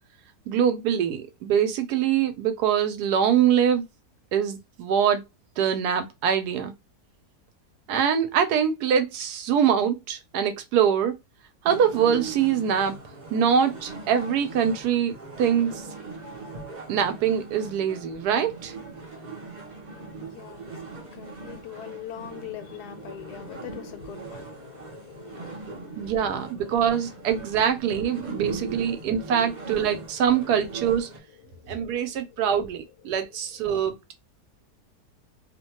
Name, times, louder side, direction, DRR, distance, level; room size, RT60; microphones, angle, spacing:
voice 1, 0.5-3.8 4.3-5.2 5.6-6.7 7.9-11.1 11.6-12.9 13.3-15.8 16.9-18.7 26.0-31.1 31.7-34.1, right 8 dB, 80° right, 1.1 m, -24 dB
sound 1, 11.6-31.2, right 4 dB, 45° right, 0.5 m, -40 dB
voice 2, 19.9-26.4 28.2-28.5 31.5-32.4 33.2-33.6, left 10 dB, 80° left, 1.2 m, -43 dB
2.8 x 2.1 x 2.9 m
omnidirectional pair, 1.7 m